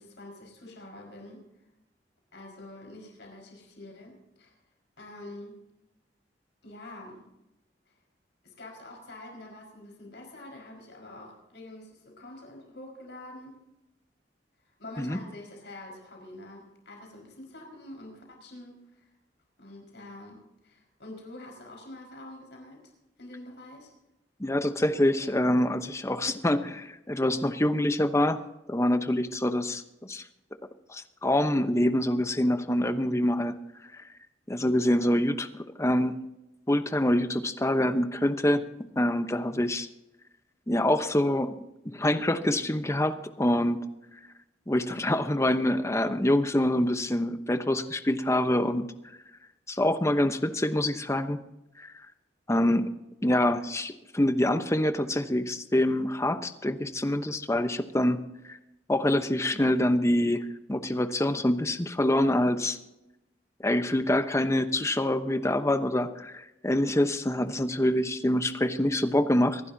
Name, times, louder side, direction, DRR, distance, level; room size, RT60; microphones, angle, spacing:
voice 1, 0.0-1.4 2.3-4.5 5.0-5.6 6.6-7.2 8.4-13.6 14.8-19.1 19.6-22.8 23.2-23.9, left 1 dB, 75° left, 1 dB, 5.2 m, -46 dB
voice 2, 24.4-28.4 28.7-30.2 30.9-33.6 33.9-34.0 34.5-35.5 35.8-36.2 36.7-38.6 39.0-39.9 40.7-41.5 41.8-43.8 44.7-48.9 49.7-51.4 51.8-51.9 52.5-52.9 53.2-58.2 58.5-58.6 58.9-62.8 63.6-69.6, left 1 dB, 15° left, 9 dB, 0.9 m, -25 dB
25.0 x 12.0 x 2.8 m, 0.92 s
head